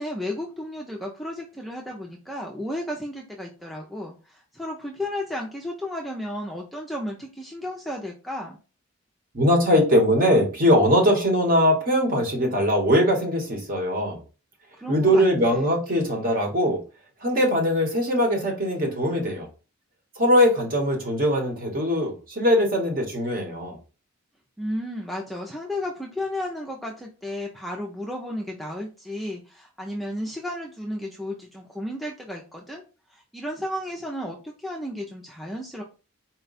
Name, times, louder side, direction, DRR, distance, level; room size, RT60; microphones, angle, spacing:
voice 1, 0.0-8.6 14.8-15.7 24.6-32.8 33.1-35.8, left 1 dB, ahead, -1 dB, 0.3 m, -33 dB
voice 2, 9.3-14.2 14.9-16.8 17.2-19.5 20.2-23.8, equal, 40° right, 1 dB, 1.1 m, -21 dB
4.2 x 2.2 x 4.0 m, 0.34 s
head